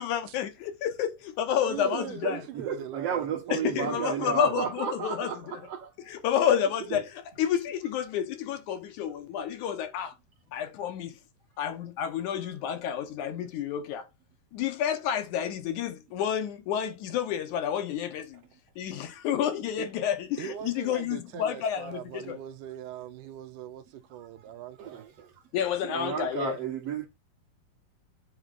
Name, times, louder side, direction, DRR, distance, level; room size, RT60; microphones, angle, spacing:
voice 1, 0.0-2.4 3.5-5.6 6.1-10.1 10.5-11.2 11.6-14.1 14.5-18.4 18.8-22.4 25.5-26.6, left 9 dB, 70° left, 2.3 m, -30 dB
voice 2, 1.6-4.6 19.8-19.9 20.4-25.1, right 11 dB, 75° right, 2.2 m, -41 dB
voice 3, 2.2-5.9 6.9-7.0 24.8-25.3 25.8-27.1, right 7 dB, 55° right, 2.2 m, -33 dB
8.2 x 4.6 x 4.0 m
omnidirectional pair, 3.9 m